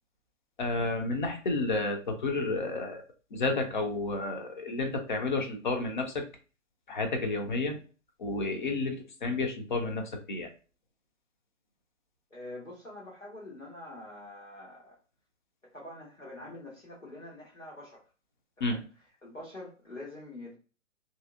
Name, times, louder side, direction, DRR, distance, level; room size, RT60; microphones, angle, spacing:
voice 1, 0.6-3.0 3.3-6.2 6.9-7.8 8.2-10.5 18.6-18.8, left 3 dB, 40° left, 4 dB, 0.5 m, -31 dB
voice 2, 12.3-15.0 15.6-18.0 18.6-18.8 19.2-20.5, left 1 dB, 90° left, -6 dB, 1.1 m, -45 dB
2.8 x 2.7 x 2.3 m, 0.36 s
figure-of-eight pair, 125°, 38 cm